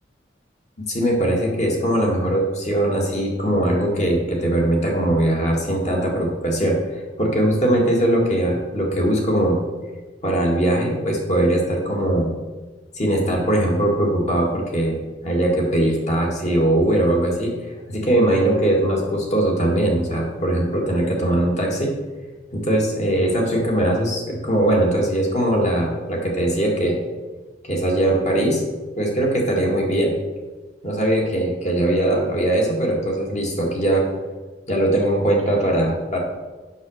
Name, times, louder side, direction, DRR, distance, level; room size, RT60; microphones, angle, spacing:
voice 1, 0.9-9.6 10.2-12.3 12.9-15.0 15.2-21.9 22.5-27.0 27.6-28.6 29.0-30.1 30.8-34.1 34.7-36.2, right 1 dB, 40° left, 0 dB, 2.0 m, -20 dB
8.1 x 6.7 x 6.4 m, 1.3 s
head